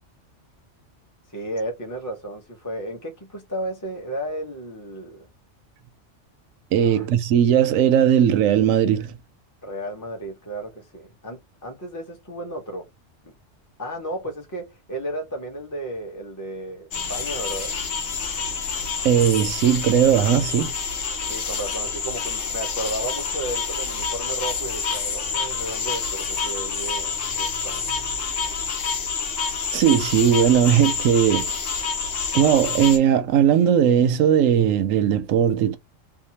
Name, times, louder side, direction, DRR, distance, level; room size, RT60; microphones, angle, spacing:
voice 1, 1.3-5.3 6.8-7.1 9.6-12.9 13.8-17.7 21.3-27.9, right 1 dB, 20° left, 0.7 m, -33 dB
voice 2, 6.7-9.1 19.0-20.7 29.7-31.6 32.3-35.8, right 9 dB, 85° right, 1.0 m, -18 dB
sound 1, 16.9-33.0, left 5 dB, 60° left, 1.0 m, -28 dB
2.7 x 2.3 x 2.7 m
omnidirectional pair, 1.3 m